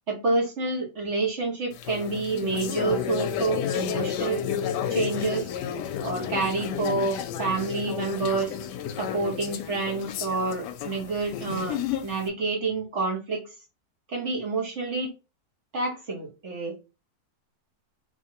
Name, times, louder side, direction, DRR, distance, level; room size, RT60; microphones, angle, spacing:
voice 1, 0.1-4.4 4.9-5.5 6.0-8.6 8.9-11.8 12.0-13.5 14.1-15.1 15.7-16.7, right 3 dB, 45° right, -1 dB, 1.2 m, -28 dB
sound 1, 1.7-12.2, left 8 dB, 75° left, 1.1 m, -31 dB
3.3 x 3.3 x 2.8 m, 0.28 s
omnidirectional pair, 2.0 m